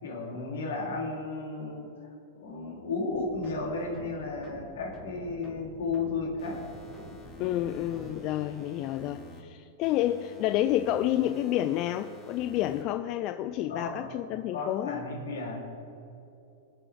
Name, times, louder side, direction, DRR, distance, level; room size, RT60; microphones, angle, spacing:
voice 1, 0.0-1.9 2.4-6.7 7.1-7.2 13.7-14.1 14.5-15.6, left 3 dB, 80° left, -1 dB, 3.2 m, -34 dB
sound 1, 3.1-8.2, equal, 5° left, 2.8 m, -48 dB
sound 2, 6.4-9.4 9.8-12.8, left 1 dB, 20° left, 2.8 m, -49 dB
voice 2, 7.3-15.0, left 13 dB, 45° left, 8 dB, 0.4 m, -29 dB
22.0 x 7.6 x 3.5 m, 2.9 s
hypercardioid pair, 125°, 0 cm